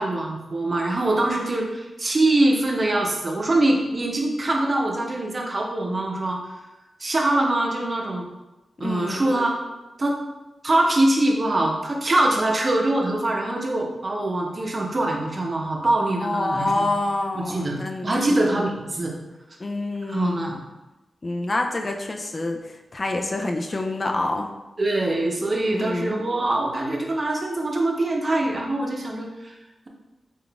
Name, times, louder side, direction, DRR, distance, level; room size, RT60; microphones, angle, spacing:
voice 1, 0.0-6.4 7.0-8.3 8.8-9.6 10.0-10.2 10.6-16.9 17.3-17.8 18.0-19.2 20.1-20.6 24.8-29.5, right 2 dB, 40° right, 0 dB, 0.7 m, -23 dB
voice 2, 8.8-9.2 16.2-18.7 19.6-20.6 21.2-24.5 25.7-26.3, left 2 dB, 40° left, 3 dB, 0.4 m, -27 dB
3.9 x 2.4 x 3.4 m, 1.0 s
cardioid pair, 65°, 0 cm